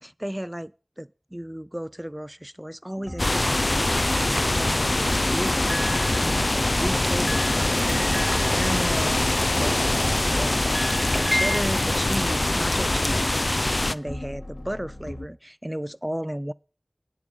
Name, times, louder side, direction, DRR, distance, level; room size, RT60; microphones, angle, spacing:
voice 1, 0.0-10.1 10.4-10.6 11.1-13.4 13.9-16.5, equal, 15° right, 0.4 m, -34 dB
sound 1, 3.0-15.3, left 1 dB, 75° left, 3.1 m, -39 dB
sound 2, 3.2-13.9, left 1 dB, 55° left, 0.5 m, -23 dB
sound 3, 5.7-6.8 7.3-9.5 10.2-11.6, equal, 15° left, 0.7 m, -33 dB
9.7 x 7.2 x 6.6 m
wide cardioid pair, 40°, 0 cm